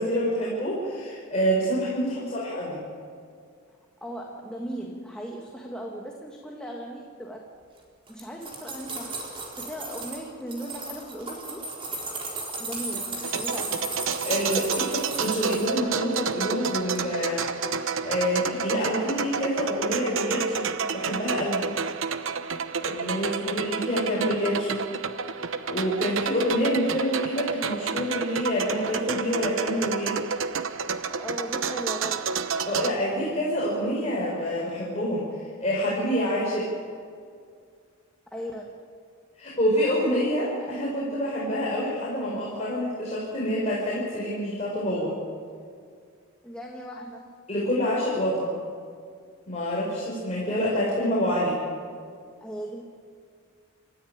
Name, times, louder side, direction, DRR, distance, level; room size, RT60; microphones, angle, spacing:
voice 1, 0.0-2.8 14.2-21.7 22.8-24.8 25.4-30.2 32.7-36.7 39.4-45.2 47.5-48.6 49.5-51.6, equal, 30° left, -6 dB, 4.8 m, -27 dB
voice 2, 3.7-7.4 8.1-11.7 12.6-13.9 23.1-23.9 31.1-32.3 38.3-38.7 46.4-47.4 52.4-52.8, equal, 5° left, -1 dB, 1.8 m, -38 dB
sound 1, 8.1-10.2 10.5-15.7 16.1-16.7 16.9-17.0, right 3 dB, 25° right, 4.0 m, -35 dB
sound 2, 13.2-32.9, right 6 dB, 75° right, 1.0 m, -30 dB
29.0 x 14.0 x 8.8 m, 2.2 s
head